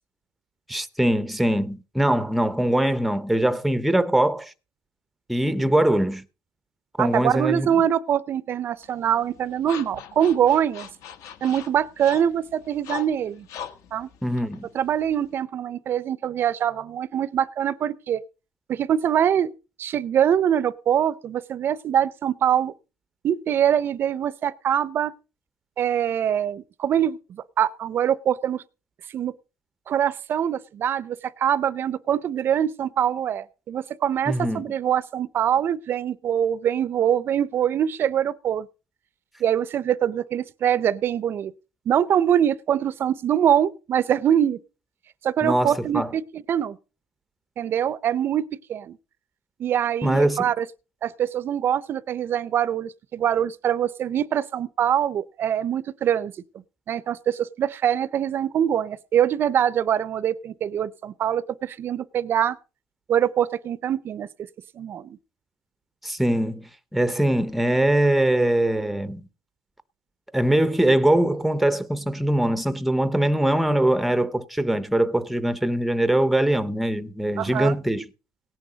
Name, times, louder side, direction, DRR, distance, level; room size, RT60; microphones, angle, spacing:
voice 1, 0.7-4.5 5.3-6.2 7.0-7.7 14.2-14.6 34.3-34.7 45.4-46.1 50.0-50.4 66.0-69.2 70.3-78.0, right 1 dB, ahead, 0.6 m, -22 dB
voice 2, 7.0-10.9 11.4-13.5 13.9-14.1 14.7-18.2 18.7-19.5 19.8-22.7 23.2-25.1 25.8-28.6 29.1-29.3 29.9-38.7 39.4-41.5 41.9-44.6 45.2-46.8 47.6-49.0 49.6-50.6 51.0-56.3 56.9-62.6 63.1-64.3 64.8-65.2 77.4-77.7, right 9 dB, 40° right, 0.5 m, -24 dB
sound 1, 8.8-15.3, left 9 dB, 65° left, 1.5 m, -41 dB
17.5 x 9.9 x 3.9 m
cardioid pair, 150°, 6 cm